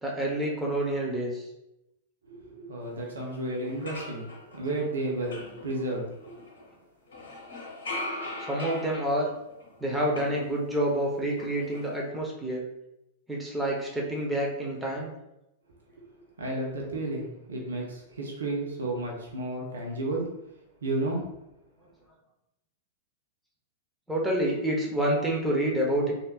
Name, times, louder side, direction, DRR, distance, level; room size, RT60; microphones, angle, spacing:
voice 1, 0.0-1.5 8.5-9.3 9.8-12.6 13.3-15.1 24.1-26.1, right 1 dB, 5° right, -3 dB, 0.8 m, -28 dB
voice 2, 2.3-6.4 16.0-16.1 16.4-20.3 20.8-21.2, right 2 dB, 75° right, -1 dB, 0.8 m, -32 dB
sound 1, 3.2-3.3 3.6-6.7 7.1-11.0 11.3-12.0, left 2 dB, 70° left, 0.8 m, -41 dB
3.5 x 2.7 x 2.4 m, 0.87 s
figure-of-eight pair, 100°, 0 cm